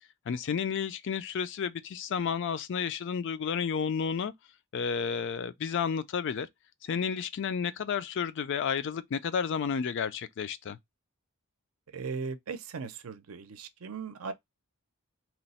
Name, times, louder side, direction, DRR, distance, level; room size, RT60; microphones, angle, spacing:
voice 1, 0.3-4.3 4.7-6.5 6.8-10.8, left 6 dB, 55° left, 0.4 m, -31 dB
voice 2, 11.9-14.3, right 5 dB, 70° right, 0.5 m, -38 dB
3.0 x 2.0 x 4.1 m
head